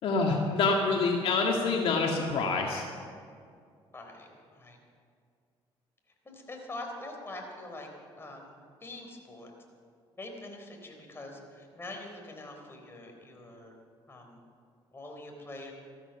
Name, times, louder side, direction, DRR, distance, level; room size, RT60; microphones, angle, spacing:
voice 1, 0.0-2.9, left 4 dB, 65° left, 0 dB, 1.9 m, -26 dB
voice 2, 3.9-4.8 6.2-7.9 8.2-8.5 8.8-9.5 10.2-13.7 14.1-14.4 14.9-15.7, left 2 dB, 25° left, 2 dB, 3.8 m, -44 dB
15.0 x 13.0 x 7.0 m, 2.2 s
cardioid pair, 95°, 10 cm